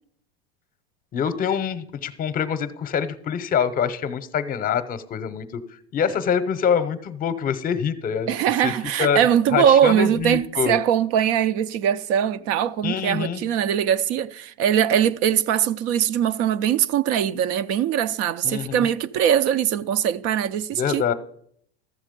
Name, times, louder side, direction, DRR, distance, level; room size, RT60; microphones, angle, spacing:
voice 1, 1.1-5.6 5.9-8.3 8.6-8.7 9.0-9.2 9.5-10.8 12.8-13.4 18.4-18.9 20.7-21.1, left 7 dB, 25° left, 0.8 m, -25 dB
voice 2, 8.3-21.0, right 9 dB, 45° right, 0.5 m, -21 dB
13.0 x 7.2 x 5.2 m
supercardioid pair, 120°, 33 cm